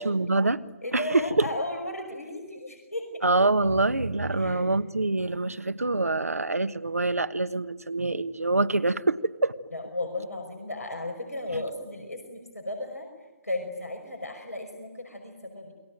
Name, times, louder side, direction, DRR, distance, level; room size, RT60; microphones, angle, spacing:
voice 1, 0.0-0.6 0.9-1.5 3.2-9.5 11.5-11.6, right 2 dB, 80° right, 11 dB, 1.3 m, -25 dB
voice 2, 0.8-3.3 4.3-4.7 9.7-13.1 13.4-15.7, left 1 dB, 85° left, 3 dB, 5.6 m, -35 dB
28.5 x 22.0 x 9.2 m, 1.2 s
figure-of-eight pair, 135°, 8 cm